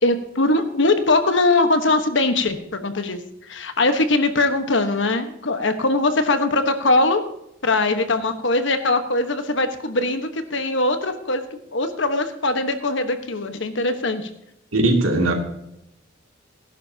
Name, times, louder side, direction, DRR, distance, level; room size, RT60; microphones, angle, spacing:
voice 1, 0.0-7.2 7.6-11.4 11.7-14.3, left 2 dB, 60° left, 8 dB, 1.2 m, -21 dB
voice 2, 14.7-15.3, right 2 dB, 90° right, 2 dB, 2.5 m, -18 dB
18.0 x 11.0 x 2.8 m, 0.80 s
head